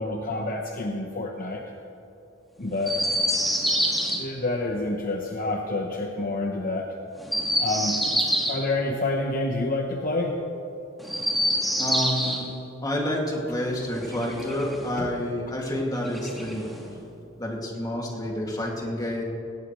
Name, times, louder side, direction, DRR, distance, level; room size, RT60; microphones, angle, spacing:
voice 1, 0.0-1.6 2.6-3.0 4.1-6.9 7.6-8.0 8.5-10.4 15.0-15.1, left 2 dB, 45° left, 1 dB, 1.0 m, -28 dB
Chirp tweet, 2.8-4.2 7.2-8.6 11.0-12.4 13.8-14.9 16.0-16.9, equal, ahead, 1.9 m, -26 dB
voice 2, 11.8-12.5 12.8-16.7 17.4-19.2, left 1 dB, 20° left, -2 dB, 2.3 m, -29 dB
18.0 x 17.0 x 3.2 m, 2.9 s
head